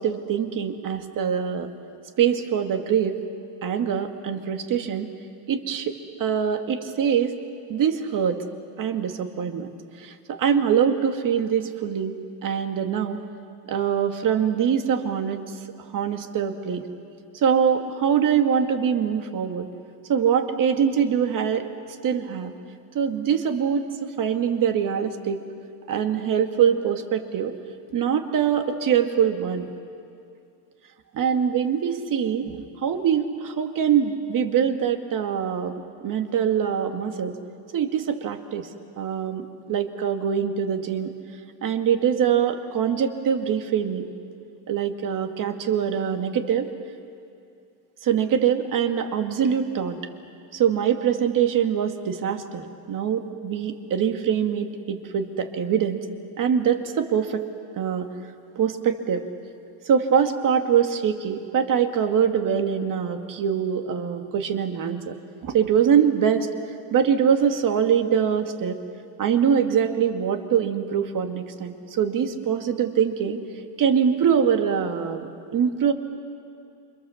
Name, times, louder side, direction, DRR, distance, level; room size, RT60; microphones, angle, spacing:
voice 1, 0.0-1.7 2.2-3.2 3.6-5.1 5.5-7.4 7.7-8.4 8.8-9.7 10.0-12.2 12.4-13.2 13.7-15.4 15.9-16.8 17.3-19.7 20.1-21.7 22.0-22.5 22.9-25.4 25.9-27.5 27.9-29.7 31.1-37.4 37.7-38.7 39.0-41.1 41.6-44.1 44.7-46.7 48.0-50.0 50.5-56.0 56.4-57.5 57.7-58.1 58.6-59.3 59.9-65.2 65.4-66.5 66.9-68.8 69.2-73.4 73.8-75.9, right 8 dB, 45° right, 5 dB, 2.1 m, -23 dB
28.5 x 25.5 x 7.3 m, 2.5 s
cardioid pair, 140°, 43 cm